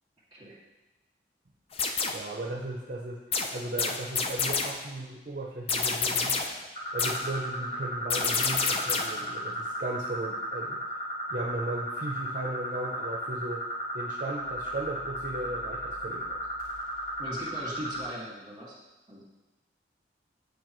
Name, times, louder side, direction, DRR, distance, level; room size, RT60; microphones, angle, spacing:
sound 1, 1.7-2.3 3.3-4.9 5.7-6.7 7.0-7.4 8.1-9.3, left 4 dB, 35° left, 0.4 m, -29 dB
voice 1, 2.1-3.2 3.5-6.4 6.9-10.8 11.3-13.6 13.9-16.5, right 2 dB, 45° right, -1 dB, 0.7 m, -36 dB
sound 2, 6.7-18.1, equal, 50° left, 2.3 m, -35 dB
voice 2, 17.2-18.8 19.1-19.2, equal, 25° right, -5 dB, 1.9 m, -39 dB
8.6 x 4.8 x 3.1 m, 1.1 s
head